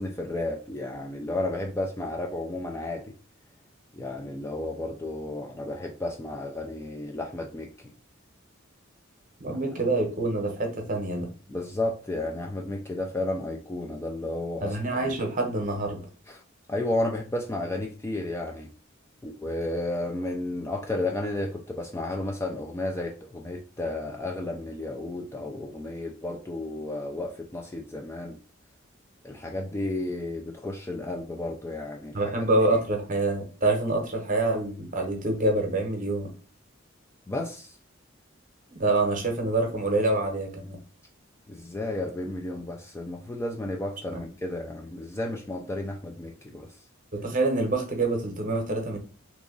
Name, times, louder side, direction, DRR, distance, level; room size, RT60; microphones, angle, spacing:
voice 1, 0.0-3.1 3.9-7.7 11.5-14.8 15.0-15.1 16.3-16.4 16.7-18.7 19.2-28.4 29.2-32.2 37.3-37.8 41.5-46.7, left 2 dB, 15° left, 1 dB, 0.3 m, -32 dB
voice 2, 9.4-11.3 14.6-16.0 32.1-36.3 38.7-40.8 44.1-44.2 47.1-49.0, right 2 dB, 40° right, 3 dB, 0.8 m, -26 dB
3.0 x 2.4 x 3.7 m, 0.37 s
head